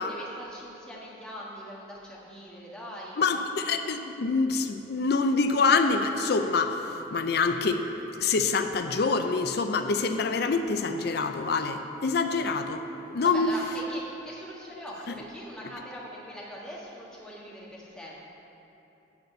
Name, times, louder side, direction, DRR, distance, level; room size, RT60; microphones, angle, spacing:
voice 1, 0.1-3.4 13.2-18.2, equal, 5° left, -6 dB, 1.5 m, -42 dB
voice 2, 3.2-6.8 7.1-7.8 8.2-12.8 13.1-13.5, left 4 dB, 55° left, 8 dB, 0.4 m, -26 dB
11.5 x 4.1 x 7.8 m, 3.0 s
head